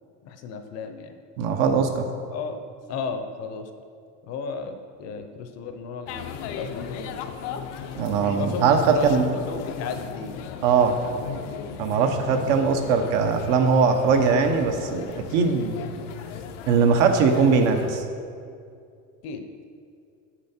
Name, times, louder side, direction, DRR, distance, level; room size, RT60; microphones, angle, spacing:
voice 1, 0.2-1.2 2.3-2.6 2.9-3.7 4.2-7.2 8.4-10.4 19.2-19.5, left 4 dB, 45° left, 7 dB, 0.7 m, -34 dB
voice 2, 1.4-2.1 8.0-9.3 10.6-11.0 11.8-15.0 15.3-15.7 16.7-18.0, right 5 dB, 70° right, 6 dB, 1.0 m, -20 dB
sound 1, 6.1-18.0, left 7 dB, 85° left, 0.7 m, -36 dB
8.0 x 7.2 x 4.3 m, 2.4 s
cardioid pair, 150°, 36 cm